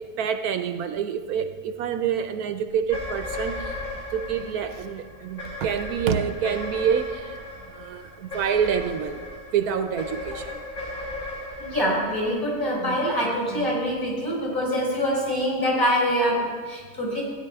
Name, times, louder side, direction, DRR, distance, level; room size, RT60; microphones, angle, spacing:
voice 1, 0.0-3.9 4.1-7.4 7.7-9.2 9.5-10.6 12.8-13.0 13.5-13.7, right 8 dB, 75° right, 8 dB, 1.1 m, -27 dB
sound 1, 2.8-13.3, left 2 dB, 55° left, 4.0 m, -36 dB
voice 2, 11.6-17.2, equal, 35° left, -6 dB, 4.4 m, -25 dB
16.0 x 10.0 x 3.5 m, 1.5 s
omnidirectional pair, 1.6 m